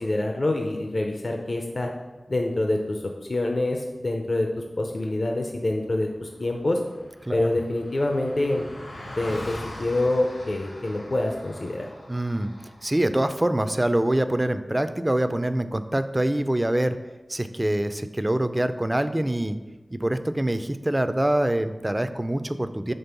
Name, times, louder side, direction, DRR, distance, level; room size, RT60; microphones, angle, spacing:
voice 1, 0.0-1.9 2.3-3.0 3.3-6.8 7.3-8.6 9.2-11.9, left 2 dB, 55° left, 2 dB, 0.5 m, -26 dB
Car passing by, 5.9-6.0 6.1-13.0, left 1 dB, 80° left, 1.4 m, -42 dB
voice 2, 12.1-12.5 12.8-17.0 17.3-19.6 19.9-22.9, right 1 dB, 20° right, 10 dB, 0.3 m, -25 dB
5.3 x 3.6 x 5.8 m, 1.2 s
wide cardioid pair, 75°, 0 cm